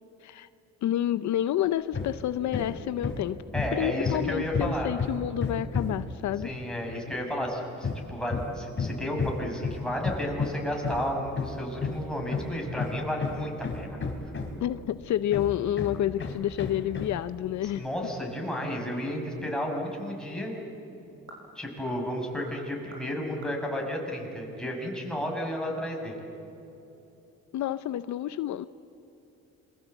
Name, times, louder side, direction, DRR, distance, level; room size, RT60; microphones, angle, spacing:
voice 1, 0.8-3.4 3.7-6.5 14.6-17.8 27.5-28.7, left 12 dB, 70° left, 14 dB, 0.7 m, -29 dB
Hammer, 1.9-2.2 2.5-6.1 7.8-14.8 15.3-17.2, left 4 dB, 40° left, 3.8 m, -32 dB
voice 2, 3.5-4.9 6.4-14.0 17.8-20.5 21.5-26.2, equal, ahead, 0 dB, 6.6 m, -32 dB
sound 1, 21.1-25.0, right 1 dB, 40° right, 7.7 m, -54 dB
27.5 x 22.5 x 8.1 m, 3.0 s
cardioid pair, 90°, 30 cm